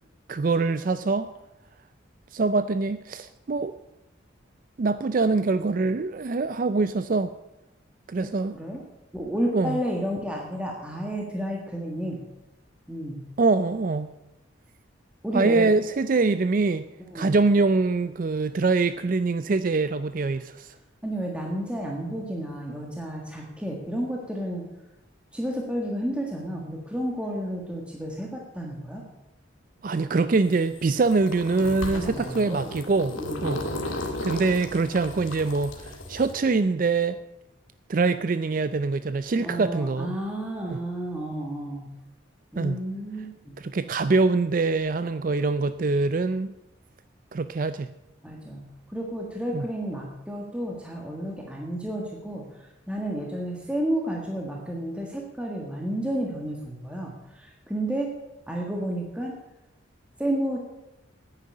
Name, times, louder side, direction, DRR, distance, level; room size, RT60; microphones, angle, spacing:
voice 1, 0.3-1.3 2.3-3.7 4.8-7.3 8.1-8.6 9.5-9.8 13.4-14.1 15.3-16.8 17.1-20.8 29.8-33.2 33.4-37.2 37.9-40.2 40.7-40.8 42.6-42.8 43.6-46.5 47.3-47.9 49.5-49.6, right 3 dB, 45° right, 12 dB, 0.4 m, -24 dB
voice 2, 8.2-8.8 9.1-12.2 12.9-13.2 15.2-15.7 17.1-17.3 21.0-24.7 25.3-29.0 31.6-32.7 33.2-33.6 39.4-41.9 42.5-43.6 48.2-48.6 48.9-58.1 58.5-59.4 60.2-60.6, right 1 dB, 5° right, -1 dB, 1.6 m, -31 dB
sound 1, 30.4-36.3, left 1 dB, 90° left, 2.0 m, -35 dB
9.9 x 9.3 x 8.6 m, 0.91 s
head